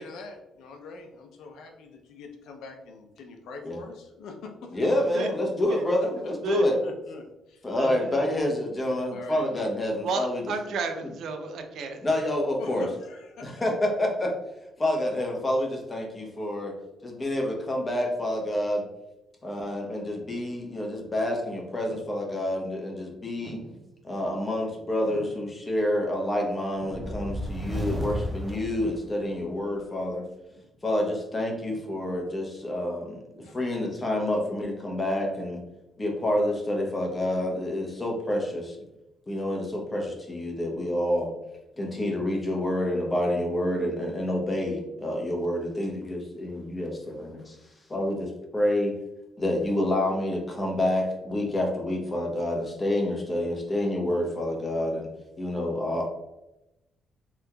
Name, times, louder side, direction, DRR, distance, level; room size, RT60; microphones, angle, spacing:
voice 1, 0.0-4.8 6.5-7.7 9.1-9.5 12.6-13.5 33.4-33.6, left 3 dB, 80° left, 3 dB, 0.5 m, -43 dB
voice 2, 4.7-6.8 7.6-10.4 12.0-12.9 13.4-14.3 14.8-16.7 17.0-18.8 19.4-23.6 24.0-30.2 30.8-33.2 33.5-35.6 36.0-38.8 39.3-41.3 41.8-47.6 47.9-48.9 49.4-55.1 55.4-56.1, left 1 dB, 25° left, 0 dB, 0.9 m, -28 dB
voice 3, 7.8-8.1 10.0-12.0 21.9-22.0 23.4-23.8 25.1-25.3 26.8-27.0 28.8-28.9 31.7-31.8 33.4-33.5, right 3 dB, 75° right, 6 dB, 0.4 m, -32 dB
sound 1, 26.8-29.5, equal, 5° right, 0.5 m, -33 dB
3.5 x 2.9 x 2.3 m, 0.92 s
cardioid pair, 90°, 0 cm